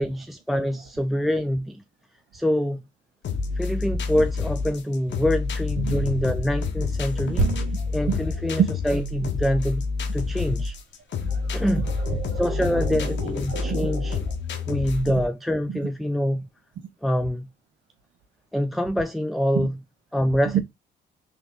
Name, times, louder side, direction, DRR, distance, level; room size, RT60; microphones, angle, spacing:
voice 1, 0.0-1.8 2.3-2.8 3.6-7.5 7.9-9.9 10.1-10.8 11.5-11.9 12.4-14.2 14.7-16.5 17.0-17.5 18.5-19.8 20.1-20.6, equal, ahead, 0.4 m, -25 dB
sound 1, 3.2-15.3, left 4 dB, 65° left, 1.0 m, -28 dB
voice 2, 7.2-8.2 8.6-8.7 11.2-11.6 12.0-14.2 14.5-14.6 15.7-15.8 19.5-19.7 20.5-20.6, right 7 dB, 75° right, 1.5 m, -29 dB
sound 2, 7.4-11.0 11.3-11.5, right 2 dB, 40° right, 1.7 m, -31 dB
3.5 x 3.4 x 3.6 m
cardioid pair, 90°, 20 cm